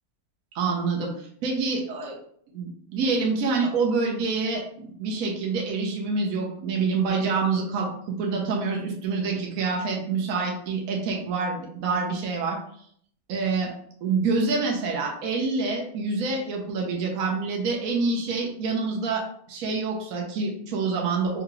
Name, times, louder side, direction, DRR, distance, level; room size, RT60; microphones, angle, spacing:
voice 1, 0.5-1.1 1.4-2.2 2.5-12.6 13.3-13.7 14.0-21.4, right 4 dB, 60° right, 0 dB, 1.1 m, -26 dB
4.7 x 2.4 x 3.1 m, 0.63 s
omnidirectional pair, 1.9 m